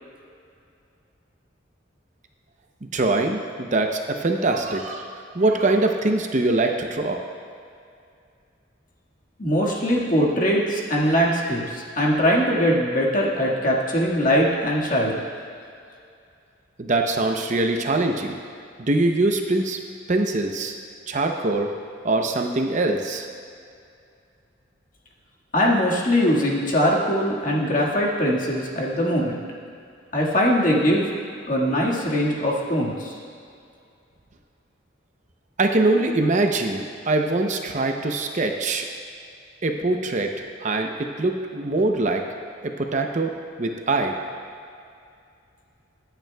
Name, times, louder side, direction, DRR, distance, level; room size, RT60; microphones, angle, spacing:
voice 1, 2.9-7.2 16.8-18.3 18.8-19.8 20.1-20.7 21.1-21.7 22.0-23.3 35.6-38.8 39.6-40.3 40.6-42.2 42.6-44.1, right 2 dB, 40° right, 3 dB, 0.7 m, -23 dB
voice 2, 9.4-15.2 25.5-29.4 30.1-31.1 31.5-33.1, equal, 45° left, -3 dB, 1.8 m, -21 dB
23.5 x 9.2 x 2.3 m, 2.5 s
head